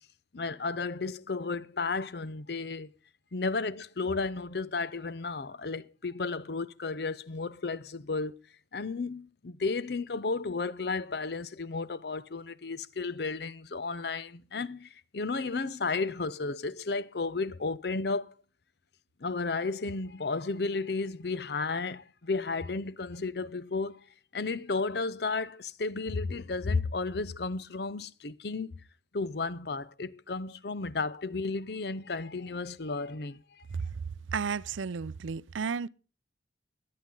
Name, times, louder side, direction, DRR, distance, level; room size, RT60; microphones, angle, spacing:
voice 1, 0.3-2.9 3.3-8.3 8.7-18.3 19.2-24.0 24.3-28.8 29.1-33.4, left 3 dB, 55° left, 0.6 m, -33 dB
voice 2, 34.3-35.9, right 6 dB, 85° right, 0.5 m, -33 dB
21.0 x 8.6 x 3.9 m
head